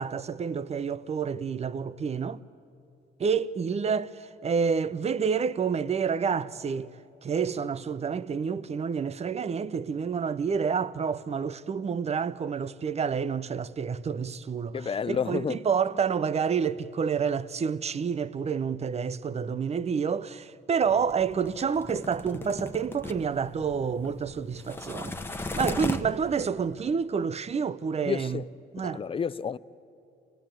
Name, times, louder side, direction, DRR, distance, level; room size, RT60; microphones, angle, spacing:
voice 1, 0.0-2.4 3.2-6.9 7.2-28.4 28.7-29.0, right 6 dB, 30° right, 0.6 m, -29 dB
voice 2, 14.7-15.6 28.0-28.5 28.8-29.6, left 6 dB, 25° left, 0.5 m, -30 dB
sound 1, 20.8-26.4, left 2 dB, 10° left, 1.2 m, -37 dB
25.0 x 18.0 x 8.9 m
cardioid pair, 90°, 20 cm